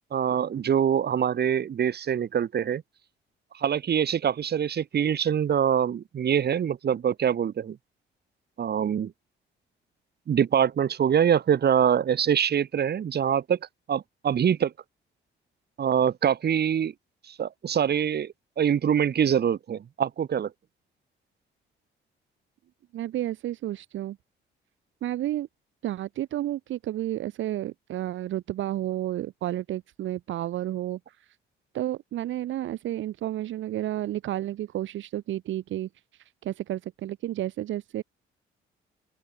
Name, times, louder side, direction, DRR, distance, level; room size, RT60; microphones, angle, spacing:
voice 1, 0.1-2.8 3.5-7.8 8.6-9.1 10.3-13.6 13.9-14.7 15.8-16.9 17.3-20.5, right 8 dB, 55° right, 2.7 m, -24 dB
voice 2, 22.9-24.2 25.0-25.5 25.8-31.2 31.7-38.0, right 13 dB, 75° right, 1.6 m, -31 dB
open air
cardioid pair, 90°, 20 cm